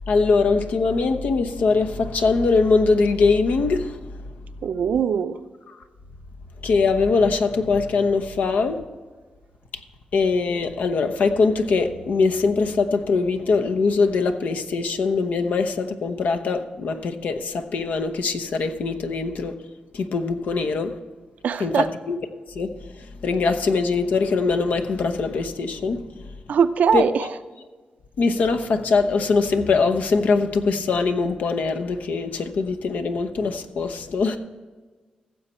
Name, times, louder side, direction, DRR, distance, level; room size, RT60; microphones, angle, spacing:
voice 1, 0.1-4.0 5.7-5.8 6.6-8.8 10.1-19.5 19.9-21.0 21.6-22.2 22.5-26.0 26.9-27.3 28.2-34.4, left 4 dB, 75° left, 0.9 m, -22 dB
voice 2, 4.6-5.4 21.4-21.9 26.5-27.3, right 7 dB, 75° right, 0.5 m, -21 dB
15.0 x 7.2 x 4.4 m
cardioid pair, 85°, 3 cm